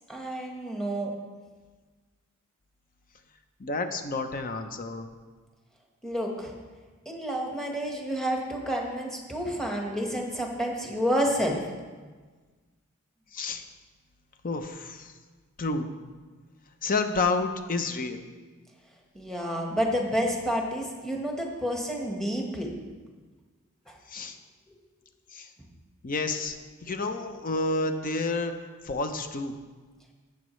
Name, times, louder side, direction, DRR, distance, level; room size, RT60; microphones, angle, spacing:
voice 1, 0.1-1.1 6.0-6.5 7.0-11.6 19.1-22.7 23.9-24.0, equal, ahead, 0 dB, 1.3 m, -29 dB
voice 2, 3.6-5.1 13.3-13.6 14.4-15.1 15.6-15.9 16.8-18.2 24.1-24.4 25.3-25.5 26.0-26.6 26.8-28.5 28.8-29.5, left 3 dB, 40° left, 8 dB, 0.7 m, -29 dB
14.0 x 8.3 x 3.2 m, 1.4 s
head